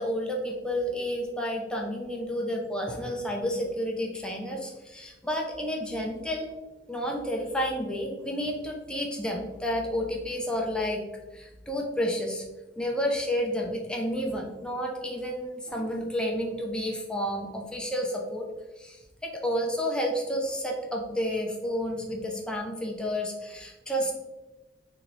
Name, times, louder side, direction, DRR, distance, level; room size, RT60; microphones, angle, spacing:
voice 1, 0.0-6.5 6.9-11.0 11.3-12.4 12.8-18.5 18.8-24.1, equal, 5° left, 0 dB, 0.5 m, -30 dB
3.8 x 2.9 x 3.1 m, 1.1 s
head